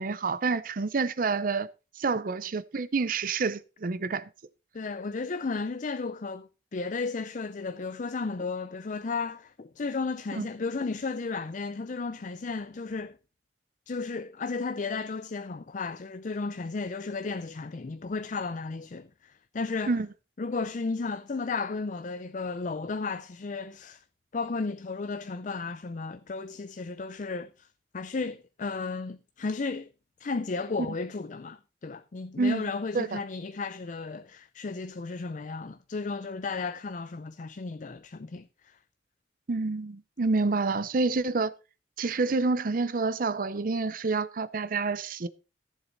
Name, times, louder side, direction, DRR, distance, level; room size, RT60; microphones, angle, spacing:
voice 1, 0.0-1.7 2.0-4.3 10.3-10.5 19.9-20.1 32.4-32.6 32.9-33.2 39.5-41.5 42.0-45.3, right 4 dB, 50° right, 0.6 m, -28 dB
voice 2, 4.7-13.2 13.9-20.0 20.4-24.0 24.3-27.7 27.9-29.9 30.2-38.8, left 4 dB, 45° left, 0.5 m, -34 dB
14.5 x 7.4 x 4.0 m
head